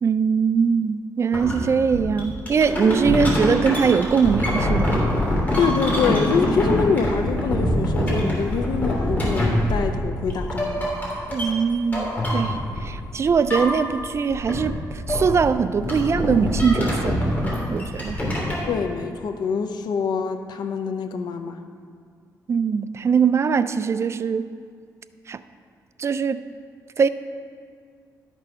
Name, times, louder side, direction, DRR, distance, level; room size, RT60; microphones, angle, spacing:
voice 1, 0.0-5.1 11.3-14.8 15.1-17.4 17.7-18.4 22.5-24.6 25.3-25.4 26.0-26.4 27.0-27.1, right 6 dB, 40° right, 13 dB, 0.4 m, -21 dB
sound 1, 1.3-1.5 1.9-13.0 13.2-14.1 14.3-18.7, left 1 dB, 25° left, 2.9 m, -24 dB
voice 2, 5.6-10.9 18.7-21.6, left 5 dB, 80° left, 7 dB, 0.7 m, -25 dB
12.0 x 6.1 x 5.6 m, 2.1 s
cardioid pair, 115°, 7 cm